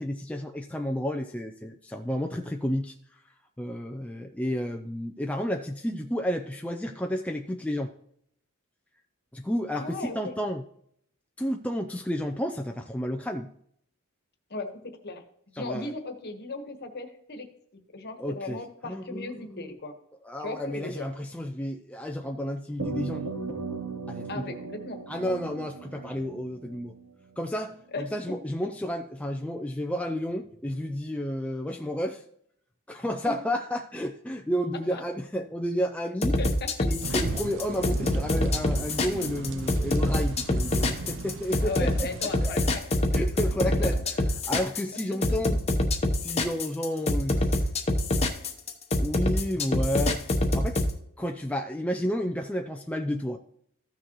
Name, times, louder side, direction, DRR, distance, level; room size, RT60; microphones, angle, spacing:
voice 1, 0.0-2.9 3.6-7.9 9.3-10.6 11.4-13.5 15.6-15.9 18.2-18.6 18.9-19.7 20.2-23.3 24.1-24.6 25.1-26.9 27.4-32.2 32.9-36.4 36.8-41.9 42.4-42.6 43.1-44.0 44.5-45.6 46.2-47.7 48.9-50.3 50.5-50.8 51.2-53.4, equal, 5° left, 3 dB, 0.4 m, -31 dB
voice 2, 9.7-10.4 14.5-14.7 15.0-15.2 15.6-17.5 17.9-19.9 20.4-21.1 24.3-25.0 27.9-28.0 33.2-33.3 34.9-35.0 36.4-36.9 41.6-42.8 43.4-43.5 43.8-44.0 45.3-45.4, left 3 dB, 50° left, 6 dB, 1.3 m, -36 dB
sound 1, 22.8-27.4, right 4 dB, 75° right, 2.8 m, -37 dB
sound 2, 36.2-50.9, left 1 dB, 30° left, 0.9 m, -25 dB
sound 3, 37.0-42.5, right 3 dB, 60° right, 0.5 m, -37 dB
14.5 x 6.3 x 3.0 m, 0.67 s
head